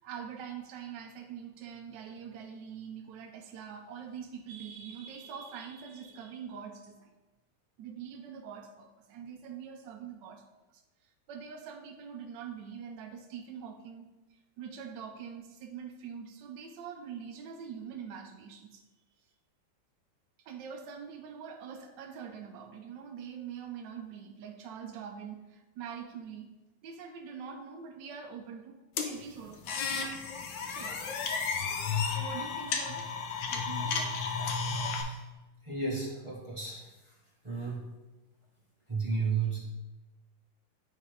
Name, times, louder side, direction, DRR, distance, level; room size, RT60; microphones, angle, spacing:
voice 1, 0.0-7.1 7.8-10.4 10.7-10.8 11.3-14.1 14.6-18.8 20.4-26.5 26.8-28.8 29.0-30.1 30.4-31.0 32.1-33.2 33.5-34.0, right 7 dB, 70° right, 4 dB, 1.1 m, -44 dB
sound 1, 29.0-35.0, left 5 dB, 70° left, 1.3 m, -33 dB
voice 2, 35.6-36.9 37.4-37.8 38.9-39.6, right 4 dB, 40° right, -4 dB, 0.4 m, -33 dB
9.4 x 3.7 x 3.2 m, 1.1 s
omnidirectional pair, 2.2 m